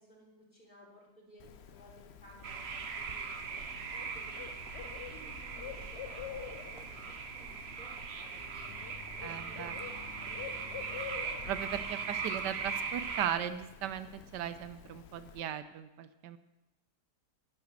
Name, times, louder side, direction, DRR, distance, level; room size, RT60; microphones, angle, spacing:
voice 1, 0.0-3.6 4.1-8.8 9.1-9.6 9.9-11.5, equal, 25° left, -3 dB, 3.4 m, -57 dB
Bird, 1.4-15.4, left 7 dB, 60° left, 0.7 m, -48 dB
sound 1, 2.4-13.3, right 5 dB, 45° right, 1.0 m, -40 dB
voice 2, 9.2-9.7 11.5-16.4, right 10 dB, 80° right, 13 dB, 1.3 m, -37 dB
10.0 x 9.8 x 6.6 m, 1.0 s
omnidirectional pair, 1.8 m